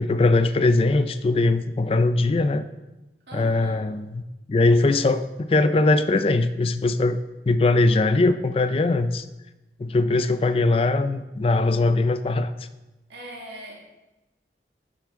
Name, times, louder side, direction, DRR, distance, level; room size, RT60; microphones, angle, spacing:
voice 1, 0.0-2.7 3.3-4.2 4.5-7.2 7.5-9.2 9.8-12.5, left 2 dB, 30° left, 11 dB, 0.3 m, -21 dB
voice 2, 3.3-3.9 13.1-13.8, right 1 dB, 80° right, -4 dB, 1.6 m, -40 dB
9.3 x 7.0 x 3.6 m, 1.0 s
head